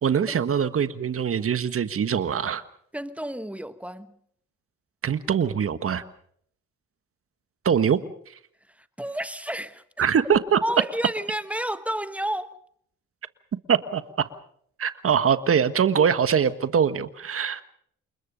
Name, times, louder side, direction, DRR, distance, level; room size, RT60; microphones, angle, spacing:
voice 1, 0.0-2.6 5.0-6.0 7.6-8.0 10.0-10.6 13.7-14.3 14.8-17.6, right 7 dB, 45° right, 1.5 m, -23 dB
voice 2, 2.9-4.2 8.8-9.8 10.6-12.6, right 1 dB, 5° right, 1.3 m, -31 dB
28.5 x 21.0 x 5.2 m
cardioid pair, 90°, 30 cm